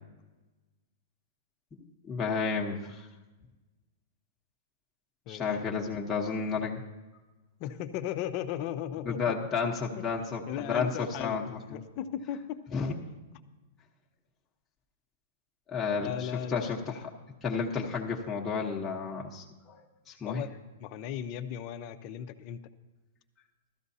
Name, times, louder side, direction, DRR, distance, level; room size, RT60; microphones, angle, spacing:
voice 1, 2.0-3.1 5.3-6.8 9.0-11.8 12.7-12.9 15.7-17.1 17.4-20.4, left 5 dB, 15° left, -3 dB, 1.1 m, -32 dB
voice 2, 7.6-9.3 10.5-12.6 16.0-16.7 20.2-20.5 20.8-22.6, left 10 dB, 40° left, 8 dB, 0.7 m, -36 dB
15.5 x 13.0 x 2.8 m, 1.2 s
hypercardioid pair, 145°, 0 cm